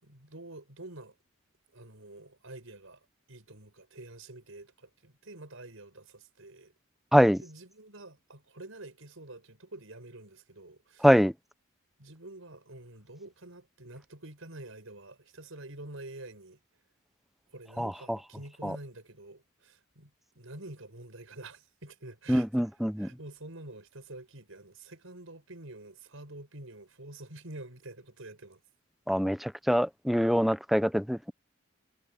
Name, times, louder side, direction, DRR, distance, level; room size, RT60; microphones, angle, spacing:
voice 1, 0.0-1.2 1.7-3.0 3.3-6.7 7.4-11.1 12.0-16.6 17.5-22.7 23.0-28.6, right 2 dB, 75° right, 5.5 m, -47 dB
voice 2, 22.3-23.1 29.1-31.3, equal, ahead, 0.9 m, -24 dB
head